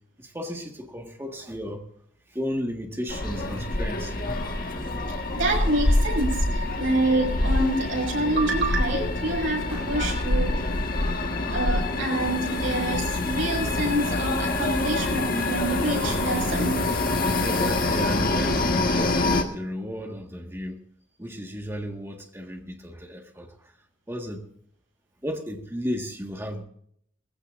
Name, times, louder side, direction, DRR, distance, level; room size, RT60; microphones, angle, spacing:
voice 1, 0.2-1.8 2.3-4.4 17.4-20.8 21.2-23.5 24.1-24.4 25.2-26.6, equal, 10° right, 1.7 m, -34 dB
sound 1, 3.1-19.4, left 2 dB, 45° left, 1.6 m, -26 dB
voice 2, 5.3-10.7 11.5-17.1, right 1 dB, 80° right, 6.2 m, -27 dB
Clapping, 9.7-12.0, equal, 10° left, 7.4 m, -50 dB
20.0 x 15.0 x 2.6 m
head